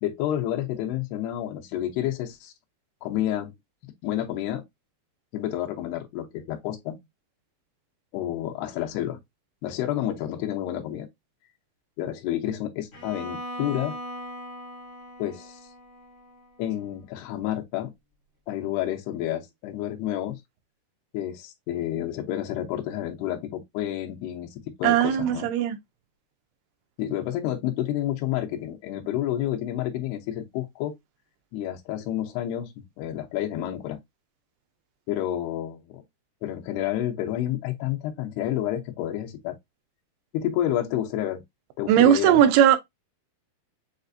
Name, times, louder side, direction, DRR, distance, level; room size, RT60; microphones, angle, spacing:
voice 1, 0.0-2.5 3.0-3.5 4.0-4.6 5.3-7.0 8.1-9.2 9.6-11.1 12.0-14.0 15.2-15.6 16.6-17.9 18.5-20.4 21.1-24.5 24.8-25.5 27.0-30.9 31.5-32.7 33.0-34.0 35.1-36.0 36.4-39.5 40.3-41.4 41.8-42.4, left 12 dB, 85° left, 2.9 m, -29 dB
Bowed string instrument, 12.9-16.9, equal, 60° left, 0.8 m, -40 dB
voice 2, 24.8-25.8 41.9-42.8, right 10 dB, 85° right, 2.7 m, -18 dB
7.3 x 2.5 x 2.5 m
omnidirectional pair, 4.5 m